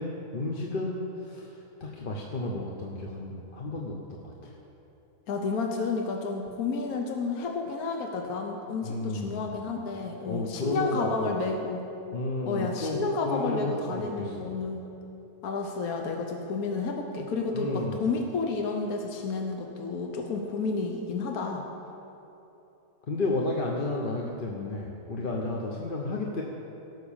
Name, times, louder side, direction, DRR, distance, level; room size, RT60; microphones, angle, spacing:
voice 1, 0.0-4.0 4.2-4.6 8.8-9.6 10.3-11.4 12.1-14.5 17.5-18.0 23.1-26.4, left 2 dB, 40° left, -1 dB, 1.0 m, -32 dB
voice 2, 5.3-11.8 12.5-14.9 15.4-21.6, left 4 dB, 70° left, 2 dB, 1.5 m, -31 dB
16.5 x 6.2 x 7.2 m, 2.9 s
omnidirectional pair, 1.6 m